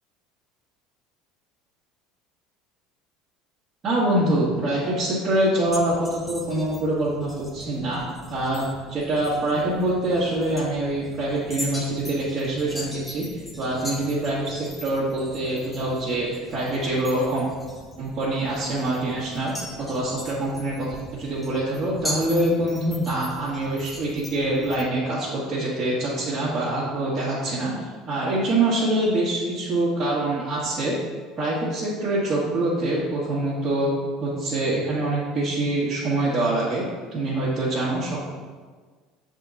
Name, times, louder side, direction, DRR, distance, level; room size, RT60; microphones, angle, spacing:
voice 1, 3.8-8.0 8.3-8.6 8.9-17.5 18.0-20.9 21.1-27.7 28.1-31.0 31.4-33.9 34.2-36.8 37.1-38.2, right 1 dB, 40° right, -9 dB, 1.8 m, -25 dB
sound 1, 5.7-24.8, left 1 dB, 10° left, 1.5 m, -40 dB
7.0 x 3.8 x 4.1 m, 1.5 s
hypercardioid pair, 80°, 0 cm